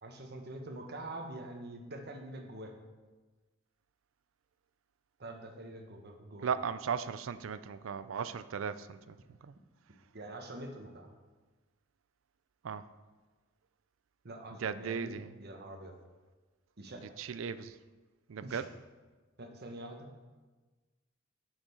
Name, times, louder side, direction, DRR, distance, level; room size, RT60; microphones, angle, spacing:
voice 1, 0.0-2.7 5.2-6.5 10.1-11.1 14.2-15.9 16.8-17.1 18.4-18.7 19.4-20.1, right 1 dB, 55° right, 3 dB, 1.2 m, -45 dB
voice 2, 6.4-9.5 12.6-12.8 14.6-15.3 17.2-17.7 18.3-18.7, right 6 dB, 70° right, 13 dB, 0.4 m, -37 dB
7.7 x 6.6 x 5.5 m, 1.3 s
head